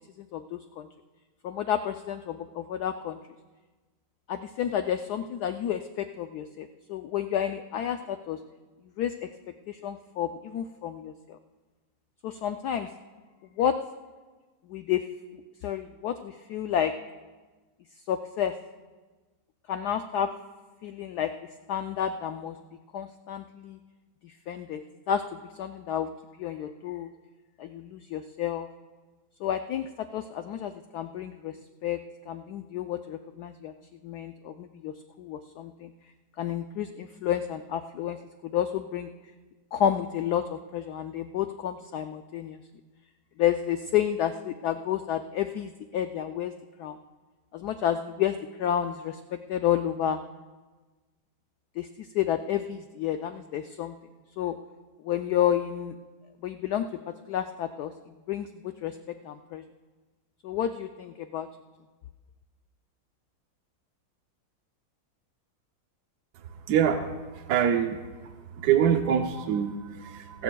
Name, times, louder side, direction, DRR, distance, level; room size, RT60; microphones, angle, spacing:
voice 1, 0.2-0.9 1.4-3.2 4.3-8.4 9.0-9.3 9.7-11.4 12.2-12.9 13.6-13.8 14.7-15.0 15.3-16.9 18.1-18.6 19.7-20.3 20.8-21.3 21.7-22.6 22.9-23.8 24.2-26.1 26.4-27.1 27.6-28.7 29.4-31.6 31.8-32.0 32.3-33.7 34.0-35.9 36.4-39.1 39.7-42.6 43.4-46.5 46.8-47.0 47.5-50.2 51.8-54.0 54.4-54.5 55.0-55.9 56.4-57.9 58.3-59.6 60.4-61.5, left 10 dB, 80° left, 8 dB, 0.9 m, -30 dB
voice 2, 66.7-67.0 67.5-68.0 68.6-70.4, right 8 dB, 65° right, 5 dB, 1.0 m, -24 dB
26.0 x 14.0 x 2.3 m, 1.3 s
omnidirectional pair, 2.2 m